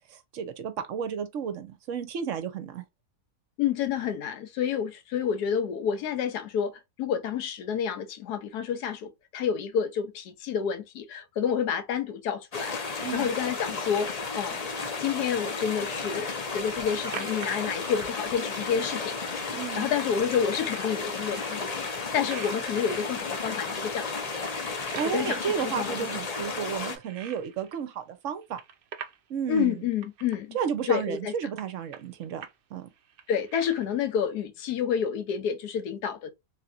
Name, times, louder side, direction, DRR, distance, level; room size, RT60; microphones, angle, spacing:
voice 1, 0.1-2.8 13.0-13.3 19.5-19.9 25.0-28.6 29.3-29.8 30.5-32.5 32.7-32.9, right 7 dB, 60° right, 0.9 m, -32 dB
voice 2, 3.6-14.7 15.0-19.2 19.8-21.8 22.1-24.3 25.1-26.2 29.5-30.6 30.9-31.3 33.3-36.3, left 7 dB, 85° left, 1.3 m, -29 dB
sound 1, 12.5-27.0, left 4 dB, 50° left, 0.4 m, -33 dB
sound 2, 16.6-18.2 19.0-19.1 19.3-19.4 19.8-20.2 20.5-21.8 22.3-23.9 24.4-26.1 26.4-28.0 28.3-29.3 29.6-29.7 29.9-30.4 30.9-31.2 31.6-32.6 32.9-34.1, right 7 dB, 85° right, 0.5 m, -45 dB
3.3 x 2.9 x 2.4 m
omnidirectional pair, 1.6 m